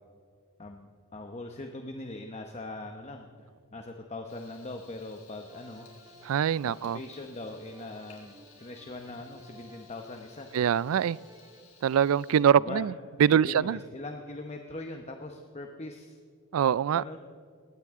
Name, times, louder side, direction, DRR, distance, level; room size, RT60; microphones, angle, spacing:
voice 1, 0.6-5.9 6.6-8.3 8.6-10.5 12.5-12.9 13.3-16.2 16.9-17.2, left 2 dB, 30° left, 0.9 m, -41 dB
Frying (food), 4.3-12.4, left 6 dB, 85° left, 3.9 m, -58 dB
sound 1, 5.5-12.5, right 1 dB, 15° right, 1.4 m, -56 dB
voice 2, 6.2-7.0 10.5-11.2 11.8-12.9 13.2-13.8 16.5-17.0, right 8 dB, 75° right, 0.3 m, -23 dB
21.0 x 17.0 x 3.7 m
head